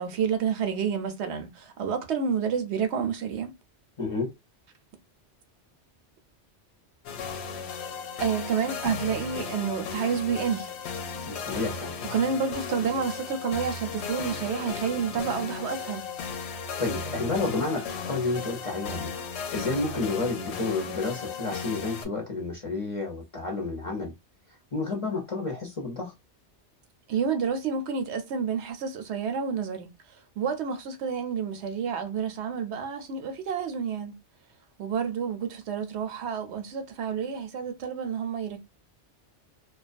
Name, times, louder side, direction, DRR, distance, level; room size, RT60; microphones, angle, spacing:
voice 1, 0.0-3.5 8.2-10.7 12.1-16.1 27.1-34.1 34.8-38.6, right 6 dB, 75° right, 0.8 m, -29 dB
voice 2, 4.0-4.3 11.3-11.9 16.8-19.1 19.5-24.1 24.7-26.1, left 3 dB, 35° left, 0.6 m, -30 dB
sound 1, 7.0-22.0, left 5 dB, 70° left, 0.8 m, -35 dB
2.3 x 2.2 x 2.4 m
omnidirectional pair, 1.2 m